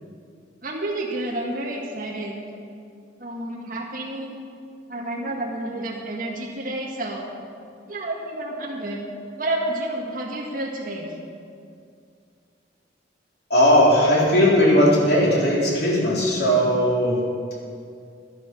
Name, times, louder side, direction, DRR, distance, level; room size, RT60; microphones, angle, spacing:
voice 1, 0.6-2.3 3.2-4.3 4.9-7.3 7.9-9.0 9.4-11.1, right 1 dB, 50° right, -3 dB, 1.8 m, -30 dB
voice 2, 13.5-17.2, equal, 60° left, -5 dB, 3.8 m, -18 dB
11.5 x 11.0 x 6.1 m, 2.4 s
head